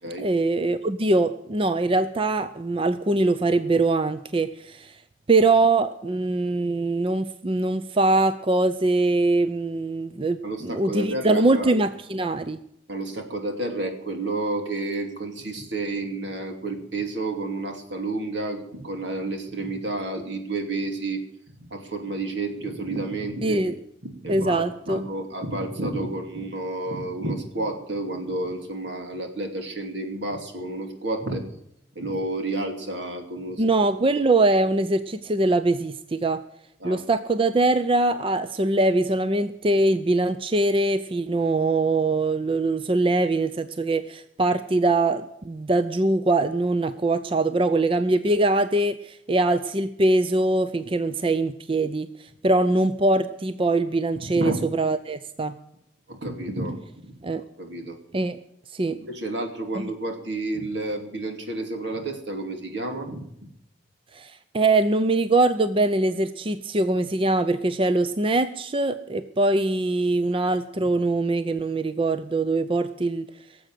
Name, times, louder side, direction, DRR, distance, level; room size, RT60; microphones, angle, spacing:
voice 1, 0.2-5.0 5.3-12.6 23.4-23.7 24.3-25.1 33.6-36.4 36.8-55.5 57.2-57.4 58.1-58.4 58.7-59.0 59.8-59.9 64.1-73.3, right 2 dB, 30° right, 11 dB, 0.5 m, -23 dB
voice 2, 10.4-11.7 12.9-21.2 21.6-23.6 24.0-31.6 31.9-33.6 34.1-34.2 36.8-37.0 54.3-54.6 56.1-57.1 57.6-58.0 58.9-63.2 70.8-70.9, right 2 dB, 75° right, 4 dB, 2.7 m, -30 dB
17.5 x 7.8 x 7.5 m, 0.75 s
head